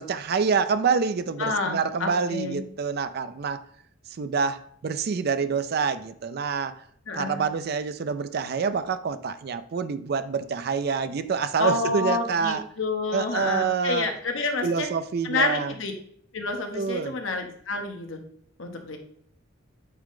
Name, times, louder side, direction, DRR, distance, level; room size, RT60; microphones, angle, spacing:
voice 1, 0.0-3.6 4.2-6.7 7.1-12.6 13.1-14.1 14.6-15.7 16.8-17.1, right 5 dB, 55° right, 11 dB, 0.4 m, -27 dB
voice 2, 1.4-2.6 7.1-7.4 11.6-14.9 15.2-15.9 16.3-18.2 18.6-19.0, left 3 dB, 75° left, 4 dB, 1.1 m, -28 dB
8.0 x 3.7 x 3.7 m, 0.63 s
head